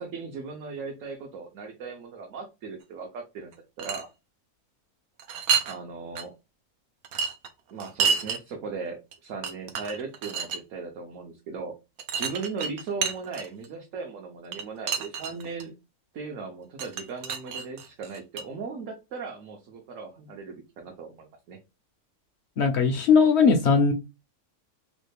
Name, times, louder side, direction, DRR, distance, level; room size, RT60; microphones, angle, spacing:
voice 1, 0.0-4.1 5.6-6.3 7.7-11.7 12.2-15.8 16.1-21.6, right 4 dB, 65° right, 1.0 m, -38 dB
sound 1, 3.5-4.0 5.2-5.8 6.1-6.2 7.0-8.4 9.1-9.2 9.4-10.6 12.0-13.7 14.5-15.6 16.8-18.4, right 6 dB, 85° right, 1.1 m, -29 dB
voice 2, 22.6-23.9, left 5 dB, 65° left, 0.7 m, -19 dB
3.1 x 2.3 x 3.3 m
omnidirectional pair, 1.5 m